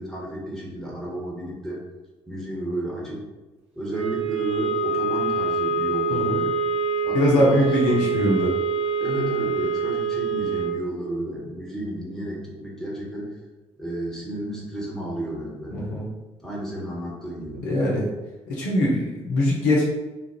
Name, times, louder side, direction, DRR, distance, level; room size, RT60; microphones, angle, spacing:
voice 1, 0.0-1.8 2.3-3.3 3.7-6.5 7.0-8.3 9.0-13.3 13.8-15.9 16.4-17.7, right 1 dB, 5° left, -5 dB, 1.3 m, -32 dB
sound 1, 3.9-10.9, right 4 dB, 40° right, 0.7 m, -25 dB
voice 2, 7.1-8.5 15.7-16.1 17.6-18.1 18.5-19.8, left 1 dB, 60° left, -4 dB, 0.7 m, -21 dB
3.8 x 2.5 x 2.9 m, 1.2 s
figure-of-eight pair, 45°, 15 cm